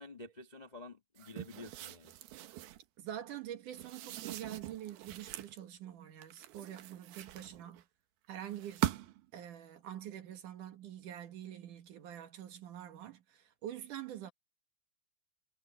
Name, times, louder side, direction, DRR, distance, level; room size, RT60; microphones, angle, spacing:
voice 1, 0.0-2.1, left 2 dB, 75° left, 0.4 m, -50 dB
sound 1, 1.2-2.9 3.7-5.6 6.2-7.8 8.5-9.3, right 14 dB, 75° right, 2.9 m, -41 dB
voice 2, 3.0-7.8 8.3-8.9 9.3-14.3, right 11 dB, 60° right, 2.8 m, -45 dB
omnidirectional pair, 4.5 m